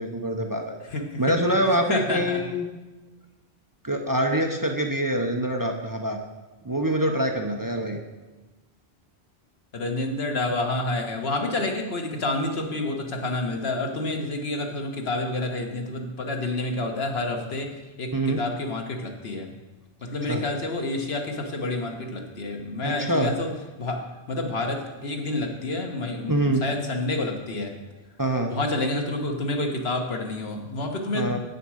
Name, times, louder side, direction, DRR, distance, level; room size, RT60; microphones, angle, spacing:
voice 1, 0.0-0.8 1.2-2.7 3.8-6.2 6.6-8.0 18.1-18.4 20.2-20.4 22.8-23.3 26.3-26.7 28.2-28.5 31.1-31.4, right 1 dB, 20° right, 3 dB, 0.7 m, -25 dB
voice 2, 0.9-1.3 1.9-2.4 9.7-17.7 18.0-19.5 20.0-23.5 23.8-27.7 28.5-31.4, left 2 dB, 80° left, 3 dB, 1.5 m, -29 dB
8.5 x 6.8 x 6.3 m, 1.1 s
omnidirectional pair, 1.0 m